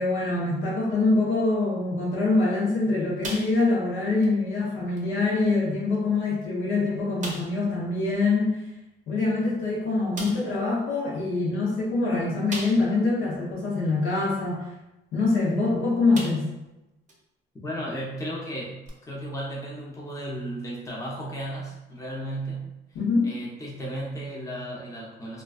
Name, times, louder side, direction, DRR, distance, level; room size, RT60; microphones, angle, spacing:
voice 1, 0.0-8.6 9.1-14.6 15.1-16.5 22.9-23.3, left 3 dB, 85° left, -5 dB, 0.9 m, -24 dB
sound 1, 3.2-3.9 4.2-4.4 5.0-5.1 5.9-6.0 6.4-6.5 7.2-7.6 9.3-9.4 10.1-10.5 12.5-13.1 13.6-13.7 15.5-15.7 16.1-16.6 17.1-17.2 18.8-18.9, right 2 dB, 40° right, 0.6 m, -37 dB
voice 2, 17.6-18.8 19.1-22.7 23.2-25.4, right 1 dB, 15° left, -4 dB, 0.7 m, -34 dB
2.4 x 2.2 x 2.3 m, 0.96 s
cardioid pair, 90°, 20 cm